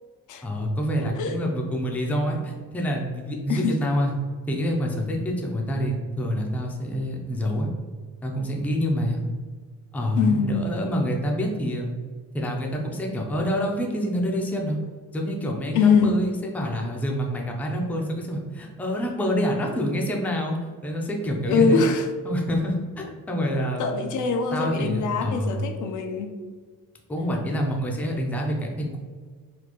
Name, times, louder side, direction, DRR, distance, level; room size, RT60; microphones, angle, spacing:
voice 1, 0.4-4.1 4.5-7.7 8.2-9.2 9.9-11.9 12.3-14.8 15.1-20.6 20.8-21.8 22.2-24.0 24.5-25.6 27.1-29.0, equal, 5° left, 0 dB, 0.4 m, -27 dB
voice 2, 1.0-1.4 3.5-3.8 10.2-10.7 15.7-16.1 21.5-22.1 23.8-26.3, left 5 dB, 60° left, 5 dB, 0.5 m, -23 dB
4.2 x 2.4 x 2.9 m, 1.5 s
cardioid pair, 125°, 34 cm